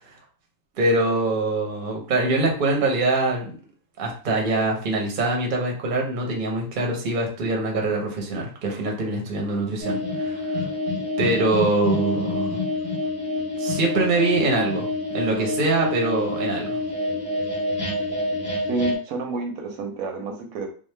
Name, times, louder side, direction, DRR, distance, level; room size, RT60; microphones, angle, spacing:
voice 1, 0.8-3.6 4.0-10.4 11.2-12.6 13.6-14.9 15.1-16.8, right 2 dB, 45° right, 0 dB, 0.7 m, -24 dB
sound 1, 9.8-19.0, left 2 dB, 40° left, 1.2 m, -27 dB
voice 2, 18.7-20.7, right 3 dB, 80° right, 3 dB, 1.1 m, -29 dB
3.1 x 2.0 x 3.1 m, 0.41 s
omnidirectional pair, 1.5 m